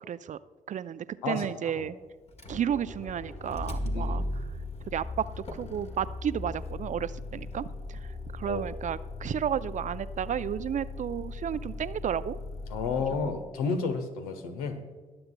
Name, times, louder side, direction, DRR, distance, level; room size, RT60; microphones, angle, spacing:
voice 1, 0.1-0.4 0.7-1.9 2.5-4.4 4.9-5.3 5.5-8.0 8.3-12.4 13.2-13.4, right 9 dB, 45° right, 15 dB, 0.4 m, -32 dB
voice 2, 1.2-1.9 3.8-4.3 8.4-8.6 12.7-14.8, left 4 dB, 80° left, 7 dB, 0.9 m, -32 dB
Motor vehicle (road), 2.3-13.5, left 2 dB, 35° left, 1.7 m, -38 dB
22.0 x 7.7 x 2.3 m, 1.3 s
hypercardioid pair, 40°, 18 cm